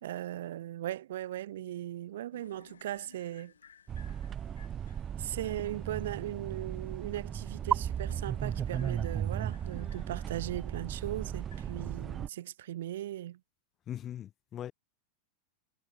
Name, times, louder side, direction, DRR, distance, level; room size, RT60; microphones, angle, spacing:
voice 1, 0.0-3.5 5.2-13.4, right 13 dB, 60° right, 1.7 m, -38 dB
sound 1, 2.3-11.9, left 7 dB, 70° left, 6.0 m, -60 dB
sound 2, 3.9-12.3, right 9 dB, 25° right, 0.6 m, -36 dB
voice 2, 13.9-14.7, left 10 dB, 30° left, 1.0 m, -40 dB
figure-of-eight pair, 90°, 0 cm